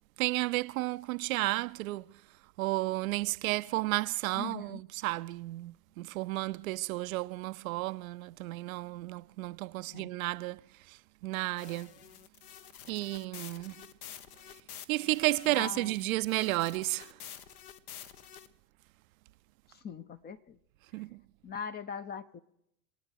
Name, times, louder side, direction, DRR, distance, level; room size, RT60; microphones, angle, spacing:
voice 1, 0.2-2.0 2.6-10.6 10.9-11.9 12.9-13.9 14.9-17.2 20.9-21.2, right 20 dB, 55° right, 0.5 m, -32 dB
voice 2, 4.4-4.8 9.9-10.1 15.5-15.9 19.7-20.6 21.4-22.4, left 6 dB, 20° left, 0.6 m, -41 dB
sound 1, 11.6-18.5, left 9 dB, 60° left, 1.2 m, -49 dB
24.5 x 8.9 x 6.4 m
hypercardioid pair, 85°, 50 cm